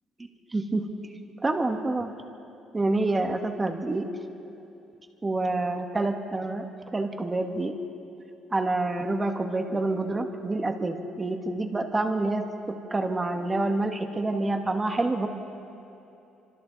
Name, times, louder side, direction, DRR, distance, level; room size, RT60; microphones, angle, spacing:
voice 1, 0.5-0.9 1.4-2.1 2.7-4.1 5.2-6.7 6.9-7.8 8.5-15.3, right 2 dB, 15° right, 4 dB, 1.4 m, -27 dB
26.0 x 26.0 x 4.1 m, 2.9 s
cardioid pair, 155°, 0 cm